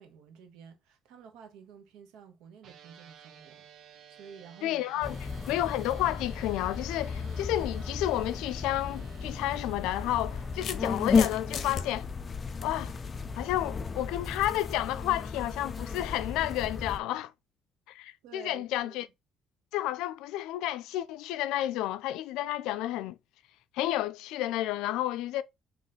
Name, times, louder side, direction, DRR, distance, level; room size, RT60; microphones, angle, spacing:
voice 1, 0.0-4.8 18.2-19.0, right 7 dB, 85° right, 1.0 m, -51 dB
sound 1, 2.6-12.0, right 9 dB, 60° right, 0.6 m, -54 dB
voice 2, 4.6-5.2 5.5-12.1 12.6-12.9 13.4-17.3 17.9-19.1 19.7-23.2 23.7-25.4, left 14 dB, 90° left, 0.4 m, -31 dB
sound 2, 5.0-17.0, left 5 dB, 30° left, 0.4 m, -34 dB
sound 3, 8.8-8.9 9.9-11.8, left 7 dB, 55° left, 0.8 m, -38 dB
3.8 x 3.0 x 4.0 m
cardioid pair, 115°, 0 cm